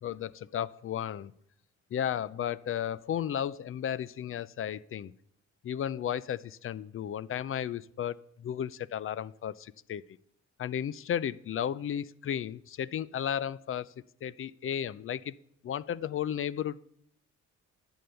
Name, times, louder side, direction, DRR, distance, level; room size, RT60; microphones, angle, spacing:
voice 1, 0.0-1.3 1.9-5.1 5.6-10.0 10.6-13.9 14.2-15.3 15.6-16.8, left 9 dB, 45° left, 20 dB, 0.4 m, -34 dB
11.0 x 7.1 x 6.8 m, 0.71 s
cardioid pair, 90°, 30 cm